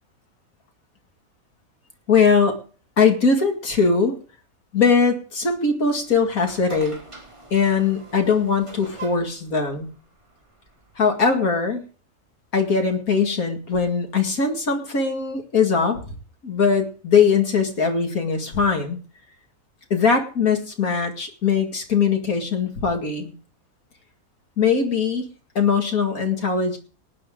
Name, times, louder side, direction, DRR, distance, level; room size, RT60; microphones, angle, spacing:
voice 1, 2.1-2.6 3.0-4.2 4.7-7.0 7.5-9.9 11.0-11.8 12.5-16.1 16.4-19.0 19.9-23.3 24.6-25.3 25.6-26.8, left 5 dB, 80° left, 4 dB, 2.5 m, -21 dB
sound 1, 6.0-11.2, right 2 dB, 20° right, 2.4 m, -44 dB
19.0 x 9.5 x 3.8 m, 0.38 s
omnidirectional pair, 1.5 m